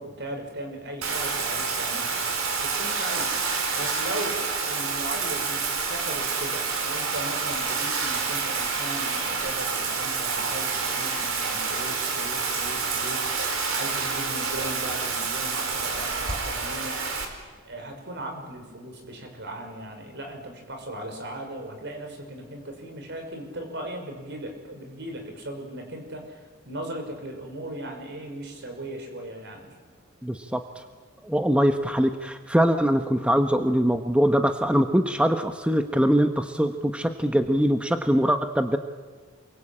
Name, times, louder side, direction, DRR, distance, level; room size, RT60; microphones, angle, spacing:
voice 1, 0.0-2.2 2.6-3.3 3.7-17.0 17.6-29.8, right 1 dB, 60° right, 4 dB, 5.9 m, -37 dB
Bathtub (filling or washing), 1.0-17.2, right 4 dB, 85° right, 4.3 m, -28 dB
voice 2, 30.2-30.8 31.2-38.8, equal, 5° right, 6 dB, 1.0 m, -22 dB
28.5 x 23.0 x 8.8 m, 1.4 s
head